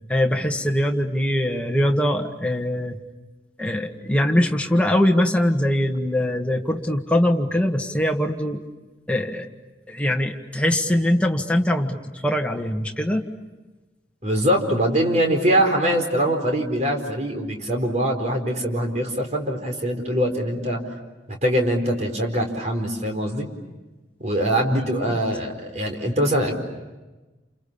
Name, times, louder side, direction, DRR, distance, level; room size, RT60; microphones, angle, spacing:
voice 1, 0.1-3.0 3.6-8.6 9.1-9.5 9.9-13.2 24.7-24.9, left 1 dB, 5° left, 2 dB, 1.7 m, -22 dB
voice 2, 14.2-20.8 21.3-23.5 24.2-26.6, equal, 40° right, 3 dB, 4.5 m, -23 dB
29.5 x 29.0 x 7.0 m, 1.2 s
head